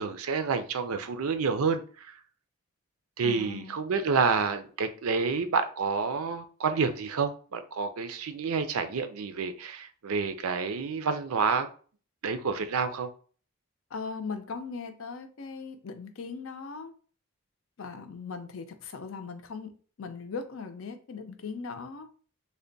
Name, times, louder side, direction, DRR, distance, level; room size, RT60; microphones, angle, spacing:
voice 1, 0.0-2.1 3.2-11.7 12.2-13.1, right 5 dB, 80° right, 0.5 m, -29 dB
voice 2, 3.2-3.8 13.9-16.9 17.8-19.7 20.0-22.1, left 4 dB, 65° left, 0.5 m, -39 dB
3.4 x 2.2 x 3.9 m
head